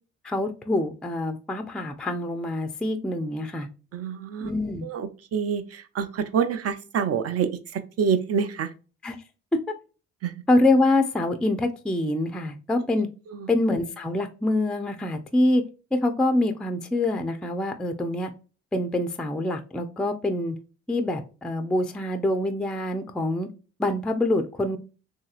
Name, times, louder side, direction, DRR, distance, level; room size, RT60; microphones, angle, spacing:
voice 1, 0.2-3.7 4.4-4.9 9.0-9.2 10.5-13.1 13.5-15.6 15.9-18.3 18.7-20.6 20.9-23.5 23.8-24.8, left 2 dB, 5° left, 0.3 m, -25 dB
voice 2, 3.9-4.5 4.8-8.7 10.2-10.3 13.3-13.5, right 7 dB, 50° right, 0.6 m, -27 dB
3.1 x 2.8 x 2.3 m
cardioid pair, 90°, 30 cm